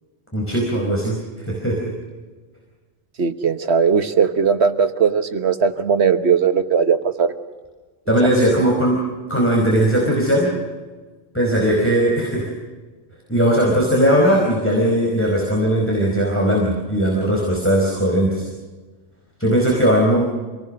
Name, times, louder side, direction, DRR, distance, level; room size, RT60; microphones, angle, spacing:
voice 1, 0.3-1.9 8.1-9.0 9.3-10.5 11.3-12.5 13.3-18.5 19.4-20.2, right 1 dB, 10° left, -2 dB, 4.7 m, -18 dB
voice 2, 3.2-7.3 8.2-8.3, right 6 dB, 60° right, 9 dB, 1.5 m, -18 dB
27.0 x 19.0 x 6.4 m, 1.3 s
omnidirectional pair, 1.2 m